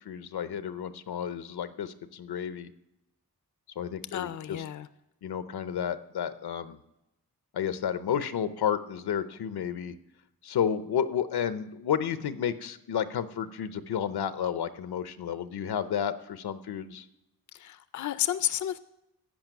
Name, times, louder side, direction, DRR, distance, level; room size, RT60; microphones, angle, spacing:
voice 1, 0.1-2.7 3.8-4.6 5.2-6.8 7.5-9.9 10.4-17.0, left 8 dB, 85° left, 13 dB, 0.7 m, -31 dB
voice 2, 4.1-4.9 17.5-18.8, left 12 dB, 50° left, 14 dB, 0.4 m, -31 dB
15.0 x 5.3 x 9.1 m, 0.87 s
wide cardioid pair, 145°, 37 cm